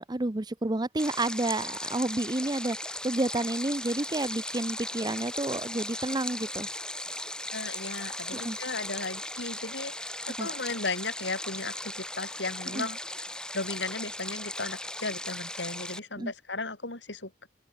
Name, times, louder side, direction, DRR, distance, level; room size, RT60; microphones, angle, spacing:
voice 1, 0.0-6.7 8.3-8.6 10.4-10.5 12.7-12.9 16.2-16.3, right 2 dB, 25° right, 0.8 m, -30 dB
Stream, 1.0-16.0, left 1 dB, 5° left, 5.8 m, -37 dB
voice 2, 7.5-13.0 13.5-17.5, left 3 dB, 85° left, 6.3 m, -36 dB
open air
head